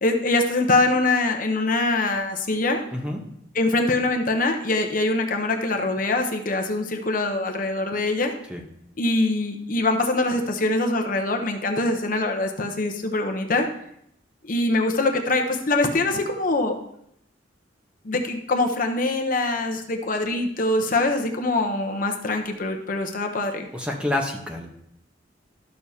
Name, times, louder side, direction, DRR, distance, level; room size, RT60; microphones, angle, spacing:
voice 1, 0.0-2.8 3.5-8.3 9.0-13.7 14.4-16.8 18.0-23.7, left 2 dB, 45° left, 4 dB, 0.8 m, -23 dB
voice 2, 2.9-3.2 8.5-8.6 23.7-24.7, left 1 dB, 5° right, 1 dB, 0.9 m, -28 dB
12.5 x 6.8 x 2.8 m, 0.74 s
head